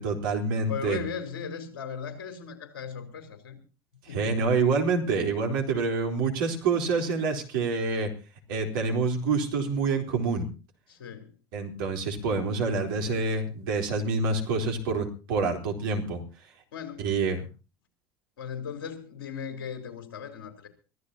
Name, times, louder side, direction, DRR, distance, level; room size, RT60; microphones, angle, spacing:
voice 1, 0.0-1.0 4.1-8.1 8.5-10.5 11.5-16.2 17.0-17.4, right 4 dB, 70° right, 3.9 m, -27 dB
voice 2, 0.7-3.6 4.1-4.5 10.9-11.3 16.7-17.1 18.4-20.7, left 6 dB, 75° left, 3.9 m, -37 dB
24.5 x 15.0 x 2.9 m
hypercardioid pair, 65°, 12 cm